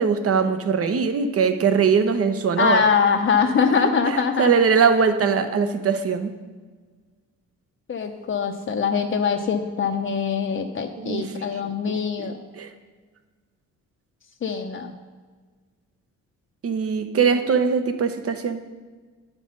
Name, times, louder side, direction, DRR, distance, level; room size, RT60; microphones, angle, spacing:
voice 1, 0.0-2.8 4.0-6.3 11.0-11.7 12.2-12.3 12.6-12.7 16.6-18.6, right 6 dB, 50° right, 9 dB, 1.0 m, -21 dB
voice 2, 2.6-4.5 7.9-12.4 14.4-14.9, left 6 dB, 40° left, 4 dB, 0.8 m, -23 dB
9.9 x 5.9 x 5.4 m, 1.4 s
cardioid pair, 90°, 30 cm